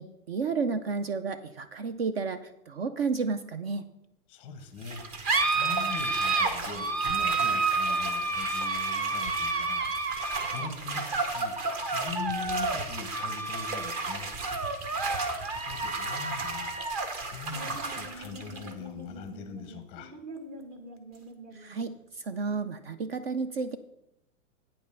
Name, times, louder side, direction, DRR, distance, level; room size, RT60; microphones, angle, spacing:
voice 1, 0.0-3.8 21.5-23.8, right 4 dB, 45° right, 12 dB, 0.5 m, -32 dB
voice 2, 4.3-9.9 10.4-11.5 11.8-14.3 14.6-14.9 15.3-16.8 17.3-20.1, left 6 dB, 15° left, 7 dB, 0.6 m, -41 dB
sound 1, 4.8-21.8, right 3 dB, 25° right, 0.9 m, -30 dB
8.8 x 5.3 x 6.7 m, 0.81 s
supercardioid pair, 170°, 42 cm